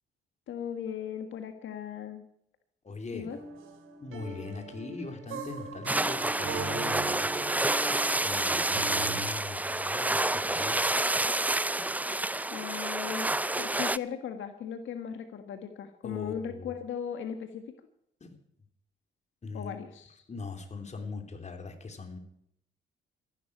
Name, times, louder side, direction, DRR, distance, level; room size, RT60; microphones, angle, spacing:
voice 1, 0.5-2.2 3.1-3.4 12.5-13.3 13.6-17.6 19.5-20.2, left 8 dB, 70° left, 7 dB, 1.6 m, -37 dB
voice 2, 2.8-3.3 4.0-7.7 8.2-10.9 16.0-16.7 18.2-18.4 19.4-19.8 20.3-22.2, left 4 dB, 35° left, 5 dB, 3.3 m, -41 dB
sound 1, 3.3-9.3, right 4 dB, 80° right, 3.3 m, -40 dB
sound 2, 5.9-14.0, right 2 dB, 10° right, 0.5 m, -29 dB
14.0 x 11.5 x 8.6 m, 0.73 s
cardioid pair, 80°, 20 cm